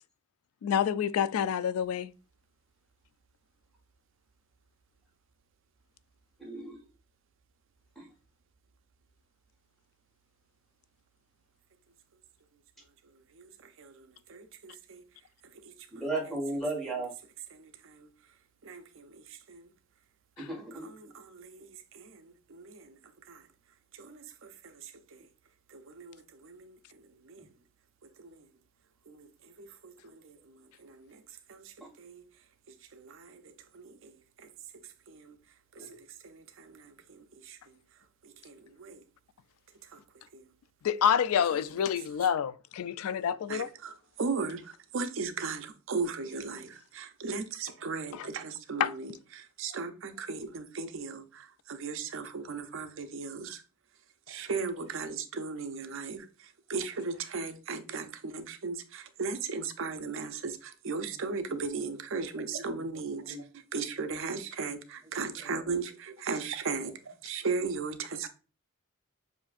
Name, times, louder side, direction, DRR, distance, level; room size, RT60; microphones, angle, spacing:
voice 1, 0.6-2.1 20.4-20.5 40.8-43.7 48.8-48.9, left 8 dB, 85° left, 0.3 m, -28 dB
voice 2, 6.4-6.8 8.0-8.1 15.9-17.1 20.4-20.9 31.8-31.9 35.8-36.0 63.3-63.4, right 2 dB, ahead, 1.5 m, -35 dB
voice 3, 13.8-14.4 15.6-16.1 16.8-17.0 17.5-18.1 18.6-19.7 20.7-23.5 23.9-25.3 25.7-27.5 28.2-28.5 29.1-32.2 32.7-34.5 35.1-35.4 35.7-37.8 38.2-39.0 39.8-40.0 40.3-40.5 41.6-42.2 43.5-53.6 54.3-68.3, right 4 dB, 65° right, 0.6 m, -38 dB
7.0 x 2.6 x 2.4 m
head